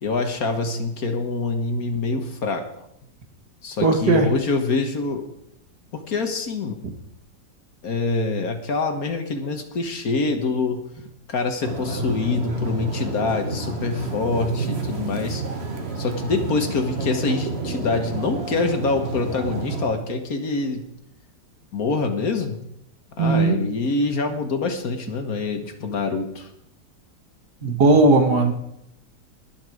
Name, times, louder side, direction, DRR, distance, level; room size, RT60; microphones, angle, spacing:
voice 1, 0.0-2.8 3.6-5.2 5.9-6.8 7.8-10.8 11.3-15.4 16.0-20.8 21.7-22.6 23.2-26.5 27.6-27.7, left 3 dB, 55° left, 7 dB, 1.6 m, -25 dB
voice 2, 3.8-4.3 23.2-23.6 27.6-28.5, right 3 dB, 60° right, 5 dB, 2.2 m, -17 dB
sound 1, 11.6-19.9, right 2 dB, 35° right, 1.7 m, -29 dB
21.0 x 7.3 x 4.8 m, 0.78 s
omnidirectional pair, 2.0 m